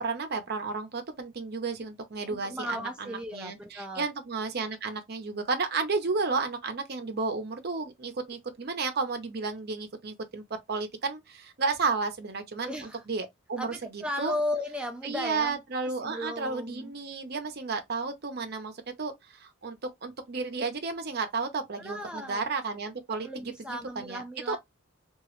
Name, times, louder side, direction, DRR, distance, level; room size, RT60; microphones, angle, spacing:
voice 1, 0.0-14.3 15.0-18.7 19.0-23.3 24.0-24.6, right 4 dB, 50° right, 0.6 m, -32 dB
voice 2, 2.3-4.1 12.6-13.1 13.6-17.0 21.8-22.4 23.2-24.6, left 1 dB, 5° right, 0.3 m, -36 dB
2.9 x 2.3 x 3.0 m
head